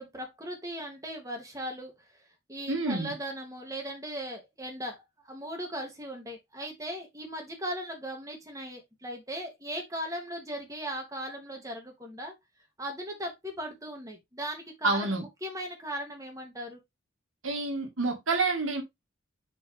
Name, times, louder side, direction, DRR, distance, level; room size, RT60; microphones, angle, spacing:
voice 1, 0.0-12.3 12.8-16.8, equal, 15° right, 2.6 m, -38 dB
voice 2, 2.7-3.1 14.8-15.3 17.4-18.8, right 3 dB, 80° right, 2.0 m, -28 dB
7.9 x 5.1 x 3.4 m
head